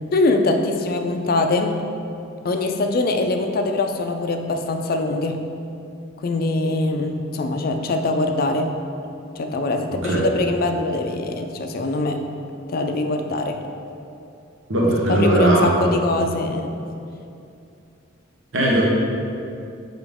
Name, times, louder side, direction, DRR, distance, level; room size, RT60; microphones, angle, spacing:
voice 1, 0.1-1.8 2.4-5.5 6.2-8.7 9.4-12.2 12.7-13.6 14.9-16.8, left 2 dB, 50° left, 5 dB, 0.4 m, -23 dB
voice 2, 14.7-15.7 18.5-18.8, right 1 dB, 75° right, -3 dB, 1.1 m, -18 dB
6.9 x 3.8 x 3.6 m, 2.6 s
head